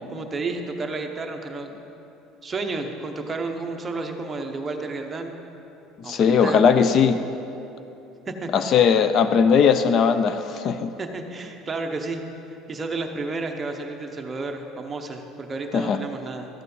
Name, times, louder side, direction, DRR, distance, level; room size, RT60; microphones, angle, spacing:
voice 1, 0.1-1.9 2.4-5.4 6.0-6.6 8.3-8.5 11.0-12.2 12.7-16.5, right 3 dB, 20° right, 3 dB, 0.8 m, -31 dB
voice 2, 6.0-7.2 8.5-10.9 15.7-16.0, left 6 dB, 40° left, 10 dB, 0.4 m, -19 dB
13.5 x 8.2 x 5.4 m, 2.9 s
cardioid pair, 160°, 0 cm